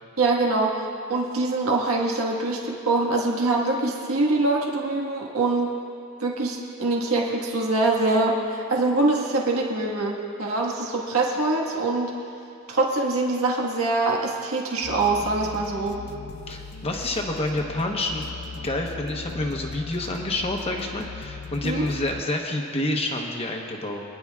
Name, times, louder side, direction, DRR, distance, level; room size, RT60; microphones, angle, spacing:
voice 1, 0.2-5.7 6.2-12.1 12.7-16.0 21.6-21.9, right 2 dB, 80° right, -2 dB, 1.6 m, -24 dB
sound 1, 14.8-22.2, left 5 dB, 45° left, 0.4 m, -39 dB
voice 2, 16.5-18.3 18.5-24.0, left 1 dB, 25° left, 1 dB, 1.0 m, -28 dB
26.0 x 10.5 x 2.4 m, 2.5 s
head